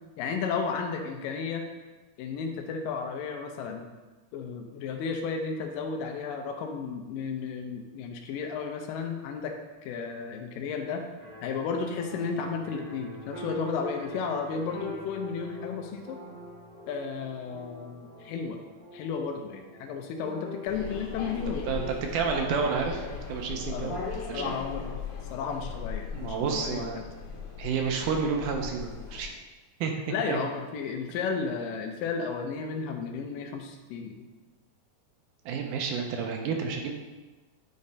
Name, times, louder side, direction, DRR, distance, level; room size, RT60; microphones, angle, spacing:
voice 1, 0.2-1.7 2.2-3.9 4.3-9.5 9.8-11.0 11.4-16.2 16.9-18.6 18.9-21.6 23.7-24.1 24.3-24.9 25.3-27.1 30.1-34.2, left 5 dB, 85° left, 4 dB, 2.3 m, -33 dB
sound 1, 11.2-22.4, left 2 dB, 40° right, 0.5 m, -43 dB
sound 2, 20.7-29.3, left 6 dB, 70° left, 2.1 m, -38 dB
voice 2, 21.7-24.0 24.3-24.5 26.1-27.0 27.6-29.3 29.8-29.9 30.3-30.4 35.5-36.9, right 5 dB, 80° right, 2 dB, 2.0 m, -30 dB
9.4 x 3.2 x 4.1 m, 1.2 s
omnidirectional pair, 3.9 m